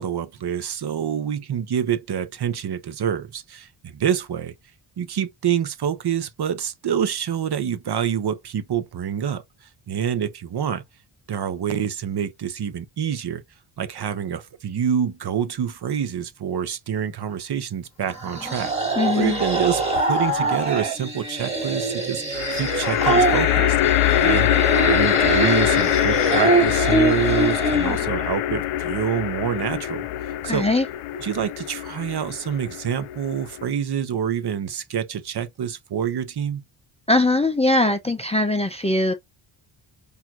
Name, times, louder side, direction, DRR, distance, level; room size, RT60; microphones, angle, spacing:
voice 1, 0.0-4.5 5.0-9.4 9.9-10.8 11.3-13.4 13.8-18.7 19.2-24.5 24.8-30.1 30.4-30.7 31.2-36.6, right 8 dB, 50° right, 0.8 m, -27 dB
sound 1, 18.1-28.1, right 2 dB, 10° right, 2.1 m, -24 dB
voice 2, 19.0-19.4 30.4-30.9 37.1-39.1, left 2 dB, 15° left, 0.5 m, -21 dB
sound 2, 19.2-19.9 22.3-33.7, left 13 dB, 90° left, 0.5 m, -23 dB
6.0 x 2.7 x 2.4 m
wide cardioid pair, 150°, 50 cm